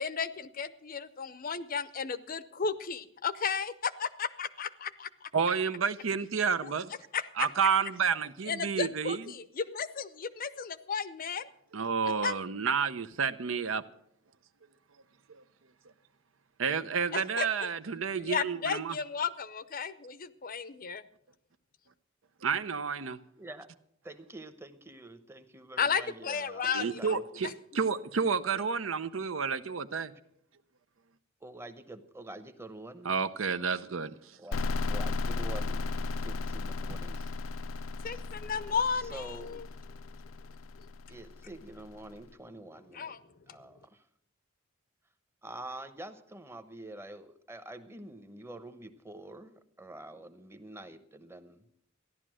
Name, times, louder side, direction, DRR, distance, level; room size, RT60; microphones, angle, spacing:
voice 1, 0.0-5.3 6.6-6.7 7.1-7.5 8.5-11.5 12.2-12.3 17.1-17.7 18.2-21.0 25.8-27.5 38.0-39.6 42.9-43.2, left 6 dB, 45° left, 15 dB, 0.6 m, -34 dB
voice 2, 5.3-6.9 7.4-9.2 11.7-13.8 16.6-19.0 22.4-23.2 26.6-30.1 33.0-34.1, right 6 dB, 85° right, 12 dB, 0.7 m, -30 dB
voice 3, 23.4-23.7 24.0-27.2 31.4-33.1 34.4-34.6 34.9-37.2 39.0-39.6 41.1-43.1 43.5-44.0 45.4-51.7, right 1 dB, 15° right, 10 dB, 0.9 m, -46 dB
sound 1, 34.5-42.1, left 3 dB, 85° left, 0.5 m, -35 dB
14.5 x 11.0 x 6.3 m, 0.74 s
head